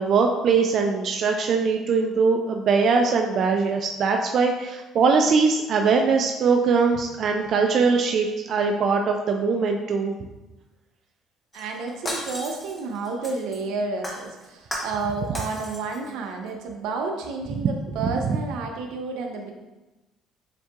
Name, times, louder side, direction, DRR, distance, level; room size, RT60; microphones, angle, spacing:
voice 1, 0.0-10.1, right 5 dB, 50° right, 3 dB, 0.3 m, -21 dB
Shatter, 11.5-13.6 14.0-15.0 15.3-16.1 16.5-16.6, left 1 dB, 20° left, 1.0 m, -35 dB
voice 2, 11.5-19.5, right 4 dB, 85° right, 3 dB, 0.7 m, -31 dB
7.2 x 2.7 x 2.4 m, 1.1 s
cardioid pair, 120°, 0 cm